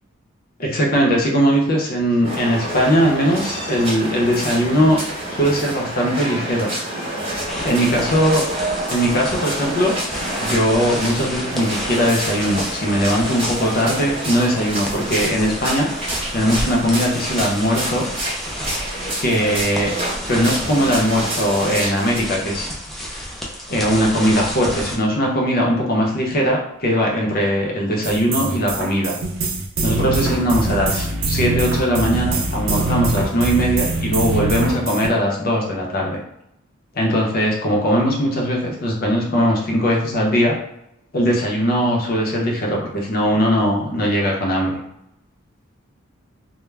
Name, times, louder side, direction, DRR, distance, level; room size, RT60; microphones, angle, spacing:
voice 1, 0.6-5.0 5.3-6.7 7.6-8.5 8.9-9.9 10.4-15.9 16.3-18.1 19.2-19.9 20.3-22.7 23.1-23.2 23.7-29.2 29.8-36.2 36.9-40.6 41.1-44.8, equal, 45° left, -1 dB, 0.6 m, -19 dB
sound 1, 2.2-22.2, right 1 dB, 30° right, 0.8 m, -28 dB
sound 2, 7.4-25.0, equal, ahead, 0.3 m, -31 dB
sound 3, 28.0-35.1, right 2 dB, 70° right, 0.4 m, -23 dB
2.3 x 2.1 x 3.2 m, 0.80 s
head